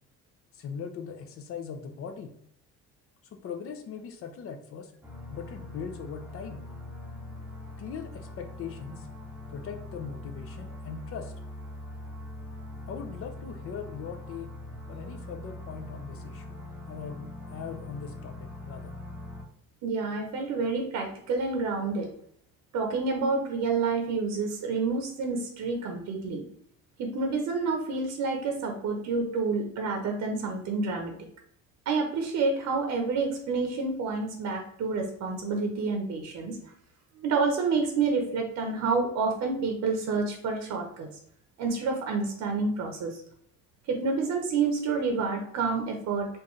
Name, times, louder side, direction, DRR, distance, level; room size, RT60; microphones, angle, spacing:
voice 1, 0.5-2.3 3.3-4.9 5.3-6.6 7.8-9.1 9.5-11.3 12.9-14.5 14.9-16.6 16.9-18.9, left 6 dB, 50° left, 6 dB, 0.6 m, -40 dB
sound 1, 5.0-19.4, left 2 dB, 5° right, 0.8 m, -42 dB
voice 2, 19.8-22.1 22.7-26.4 27.0-31.1 31.9-36.6 37.2-41.1 41.6-43.2 43.9-46.3, right 4 dB, 65° right, 3 dB, 0.9 m, -28 dB
4.5 x 2.6 x 3.1 m, 0.66 s
cardioid pair, 130°, 30 cm